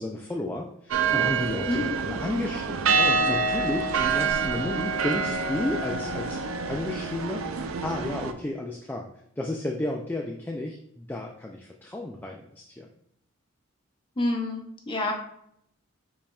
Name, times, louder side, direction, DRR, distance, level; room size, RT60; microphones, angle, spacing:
voice 1, 0.0-6.4 6.7-9.1 9.4-12.9, left 1 dB, 10° left, 1 dB, 0.3 m, -32 dB
sound 1, 0.9-8.3, right 4 dB, 85° right, 0.4 m, -27 dB
voice 2, 1.7-2.0 14.2-15.1, left 2 dB, 25° left, 0 dB, 0.8 m, -28 dB
5.2 x 4.2 x 2.3 m, 0.71 s
head